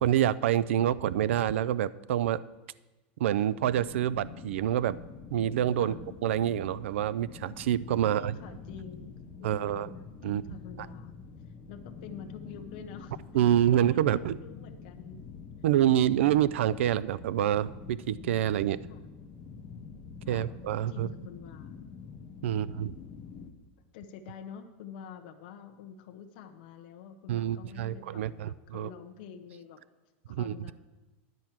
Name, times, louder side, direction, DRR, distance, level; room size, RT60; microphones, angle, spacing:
voice 1, 0.0-2.4 3.2-5.0 5.3-5.9 6.2-8.3 9.4-9.9 10.2-10.4 13.3-14.4 15.6-18.8 20.3-21.1 22.4-22.9 27.3-28.9 30.3-30.7, right 11 dB, 90° right, 19 dB, 0.4 m, -27 dB
sound 1, 3.6-23.5, left 5 dB, 15° left, 0.6 m, -46 dB
voice 2, 8.0-11.2 11.7-15.3 16.0-16.3 18.9-19.1 20.2-21.8 22.5-23.0 23.9-29.8 30.3-30.7, left 7 dB, 50° left, 6 dB, 0.8 m, -47 dB
10.5 x 4.6 x 7.2 m, 1.1 s
supercardioid pair, 175°, 6 cm